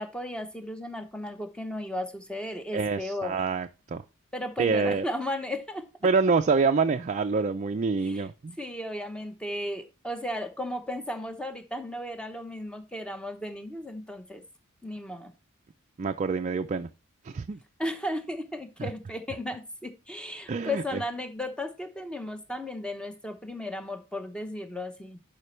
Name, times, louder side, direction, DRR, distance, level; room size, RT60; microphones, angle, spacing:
voice 1, 0.0-3.4 4.3-5.9 8.0-8.3 8.6-14.4 14.8-15.3 17.8-25.2, left 1 dB, 5° left, 0.9 m, -35 dB
voice 2, 2.7-4.0 4.6-5.0 6.0-8.6 16.0-16.9 17.3-17.6 18.8-18.9 20.5-20.8, right 4 dB, 35° right, 0.4 m, -26 dB
11.0 x 5.1 x 3.1 m
head